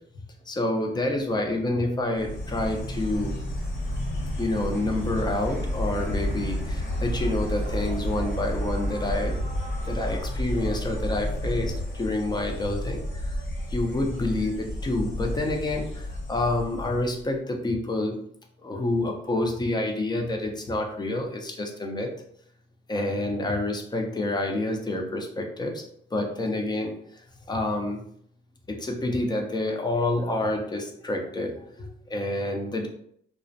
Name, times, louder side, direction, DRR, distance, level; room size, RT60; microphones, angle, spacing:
voice 1, 0.5-3.4 4.4-9.4 9.8-13.4 13.7-18.2 18.6-22.1 22.9-25.8 26.1-26.9 27.5-28.0 28.7-32.9, left 2 dB, 20° left, 2 dB, 0.5 m, -28 dB
Insect, 2.1-17.2, equal, 70° left, 1.0 m, -31 dB
2.4 x 2.1 x 2.5 m, 0.66 s
cardioid pair, 90°, 20 cm